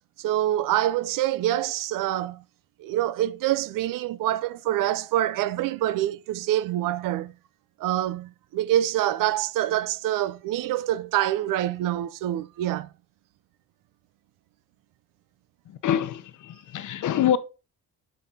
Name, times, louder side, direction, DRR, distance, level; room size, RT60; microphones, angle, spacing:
voice 1, 0.2-2.4 2.8-7.3 7.8-12.9, right 13 dB, 75° right, 0.6 m, -26 dB
voice 2, 15.7-17.4, left 10 dB, 65° left, 0.9 m, -25 dB
8.7 x 7.0 x 2.8 m
cardioid pair, 75°, 33 cm